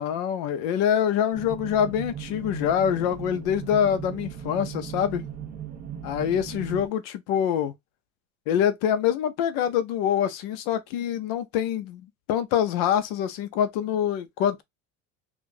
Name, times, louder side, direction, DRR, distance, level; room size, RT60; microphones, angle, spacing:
voice 1, 0.0-5.2 6.0-7.7 8.5-14.6, left 9 dB, 60° left, 0.6 m, -25 dB
sound 1, 1.3-6.9, right 9 dB, 25° right, 0.4 m, -37 dB
2.6 x 2.4 x 3.7 m
cardioid pair, 175°, 34 cm